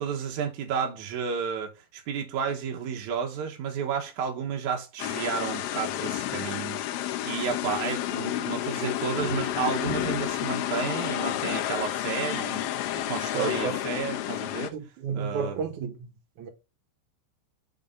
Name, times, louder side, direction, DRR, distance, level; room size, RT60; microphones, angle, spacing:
voice 1, 0.0-14.7 15.1-15.6, right 7 dB, 80° right, 1.7 m, -32 dB
sound 1, 5.0-14.7, left 13 dB, 90° left, 2.2 m, -30 dB
voice 2, 13.3-13.8 14.7-16.1 16.4-16.5, right 6 dB, 65° right, 2.0 m, -32 dB
6.7 x 3.7 x 5.3 m
omnidirectional pair, 5.3 m